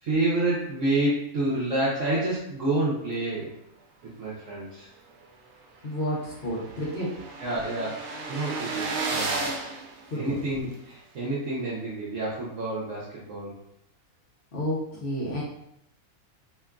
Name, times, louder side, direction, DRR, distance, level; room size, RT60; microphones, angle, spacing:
voice 1, 0.0-3.6 4.0-4.9 7.4-9.6 10.1-13.5, right 2 dB, 65° right, -7 dB, 1.0 m, -29 dB
sound 1, 5.2-5.3 5.6-5.7 5.9-10.7, right 3 dB, 90° right, 1.1 m, -33 dB
voice 2, 5.8-7.2 10.1-10.4 14.5-15.4, equal, 50° left, -6 dB, 0.8 m, -30 dB
2.9 x 2.3 x 2.3 m, 0.75 s
omnidirectional pair, 1.5 m